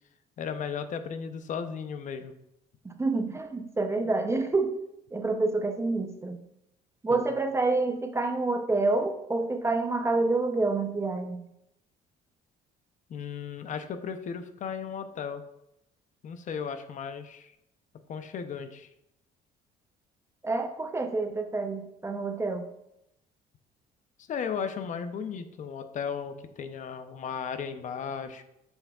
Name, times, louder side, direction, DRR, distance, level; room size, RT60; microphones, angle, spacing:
voice 1, 0.4-2.3 7.1-7.3 13.1-15.4 16.2-17.5 18.1-18.9 24.3-28.4, left 6 dB, 50° left, 10 dB, 0.6 m, -35 dB
voice 2, 2.8-4.8 5.1-6.4 7.0-11.4 20.4-22.7, right 3 dB, 15° right, 7 dB, 0.6 m, -28 dB
7.1 x 7.0 x 2.3 m, 0.83 s
cardioid pair, 110°, 17 cm